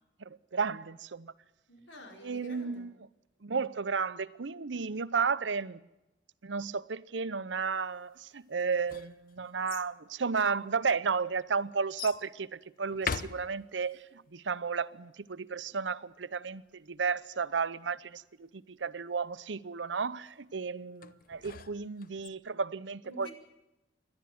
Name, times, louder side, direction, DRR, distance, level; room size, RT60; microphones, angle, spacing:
voice 1, 0.2-1.3 2.2-2.9 3.4-5.8 6.4-23.3, right 5 dB, 75° right, 0.8 m, -33 dB
voice 2, 1.7-2.9 23.0-23.3, equal, 90° left, 4.9 m, -48 dB
sound 1, 8.6-9.9 10.7-10.8 12.0-12.3 12.9-14.0 21.0-22.3, left 6 dB, 50° left, 0.8 m, -40 dB
27.5 x 12.0 x 9.4 m
head